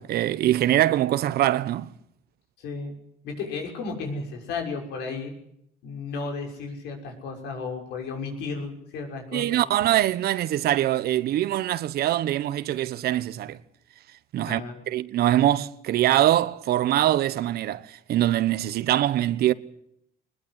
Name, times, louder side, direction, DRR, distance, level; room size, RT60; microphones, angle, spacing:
voice 1, 0.0-1.9 9.3-13.6 14.3-14.6 14.9-19.5, right 13 dB, 70° right, 1.2 m, -23 dB
voice 2, 2.6-3.0 3.2-5.3 5.8-9.6 14.5-14.7, left 4 dB, 85° left, 6.4 m, -33 dB
21.0 x 21.0 x 8.3 m
cardioid pair, 110°, 17 cm